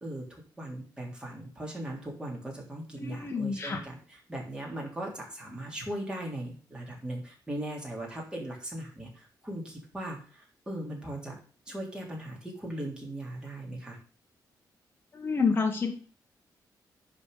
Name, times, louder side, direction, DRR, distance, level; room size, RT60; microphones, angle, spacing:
voice 1, 0.0-10.2 10.7-11.3 11.7-14.0, right 1 dB, 10° right, -2 dB, 3.4 m, -38 dB
voice 2, 3.0-3.8 15.1-15.9, left 5 dB, 30° left, 1 dB, 1.5 m, -28 dB
10.5 x 4.3 x 6.7 m, 0.40 s
wide cardioid pair, 140°, 7 cm